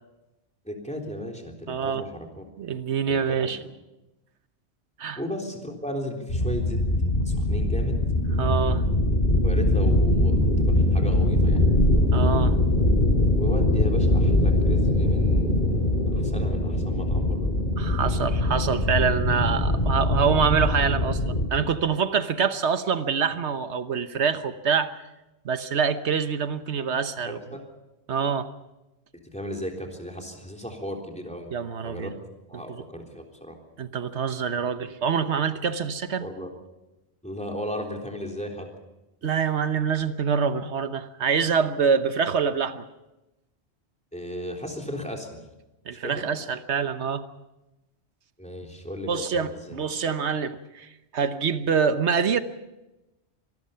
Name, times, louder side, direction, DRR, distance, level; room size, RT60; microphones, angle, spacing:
voice 1, 0.7-2.4 3.1-3.7 5.2-6.8 7.3-8.0 9.4-11.7 13.4-17.5 27.3-27.6 29.2-31.5 31.8-32.1 32.5-33.6 36.2-36.5 37.2-38.7 44.1-45.4 46.0-46.3 48.4-49.6, equal, 5° left, 2 dB, 3.5 m, -35 dB
voice 2, 1.7-2.1 2.6-3.6 5.0-5.2 8.3-8.8 12.1-12.6 17.8-24.9 25.4-27.4 28.1-28.5 31.5-32.1 32.5-32.8 33.8-36.2 39.2-42.8 45.9-47.2 49.1-52.4, right 6 dB, 90° right, 10 dB, 1.4 m, -25 dB
sound 1, 6.3-21.4, left 1 dB, 50° left, 3.1 m, -22 dB
25.5 x 19.5 x 5.7 m, 0.98 s
omnidirectional pair, 1.1 m